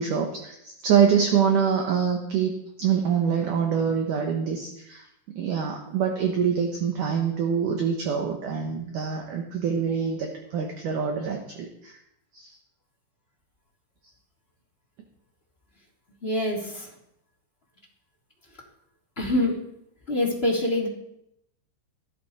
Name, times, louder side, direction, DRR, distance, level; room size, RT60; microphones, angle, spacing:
voice 1, 0.0-2.5 2.8-5.1 5.4-12.0 12.3-12.5, right 7 dB, 60° right, 2 dB, 2.3 m, -25 dB
voice 2, 16.2-16.9 19.2-19.5 20.1-20.9, left 1 dB, 15° left, -1 dB, 2.8 m, -25 dB
17.0 x 13.5 x 4.4 m, 0.80 s
omnidirectional pair, 5.2 m